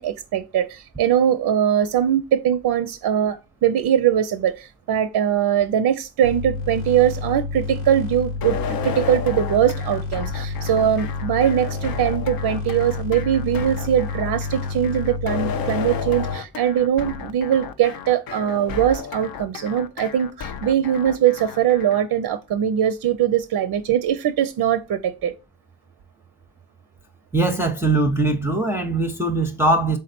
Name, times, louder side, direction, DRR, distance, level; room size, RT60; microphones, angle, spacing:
voice 1, 0.0-25.3, right 10 dB, 50° right, 0.5 m, -21 dB
sound 1, 6.2-16.4, left 4 dB, 85° left, 1.3 m, -29 dB
sound 2, 8.4-22.0, left 6 dB, 50° left, 0.7 m, -33 dB
voice 2, 27.3-30.0, right 2 dB, 5° right, 0.7 m, -21 dB
3.7 x 3.2 x 4.2 m
hypercardioid pair, 45°, 46 cm